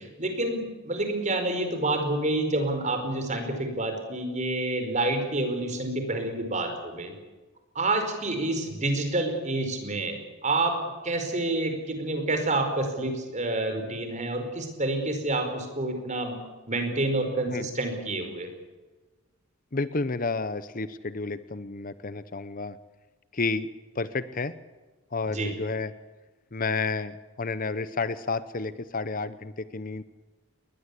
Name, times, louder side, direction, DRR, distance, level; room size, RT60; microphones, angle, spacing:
voice 1, 0.0-7.1 7.7-10.2 10.4-10.8 11.0-16.3 16.7-18.5 25.3-25.5, right 2 dB, 35° right, 6 dB, 4.9 m, -28 dB
voice 2, 19.7-22.8 23.3-23.7 23.9-24.5 25.1-25.9 26.5-30.0, left 3 dB, 40° left, 14 dB, 0.8 m, -31 dB
22.5 x 19.5 x 8.4 m, 1.2 s
head